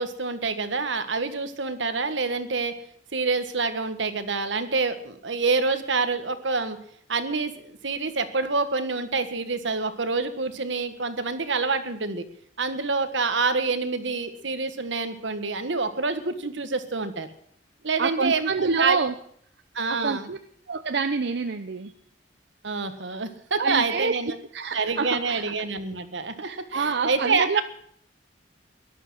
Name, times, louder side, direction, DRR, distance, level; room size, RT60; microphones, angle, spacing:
voice 1, 0.0-2.8 3.1-6.8 7.1-12.2 12.6-17.3 17.8-19.0 19.7-20.3 22.6-24.4 24.7-27.6, right 4 dB, 85° right, 9 dB, 1.6 m, -27 dB
voice 2, 18.0-19.1 19.9-20.4 20.7-21.9 23.6-24.2 24.5-25.5 26.4-27.6, right 4 dB, 65° right, 9 dB, 0.7 m, -27 dB
17.5 x 12.0 x 6.3 m, 0.64 s
head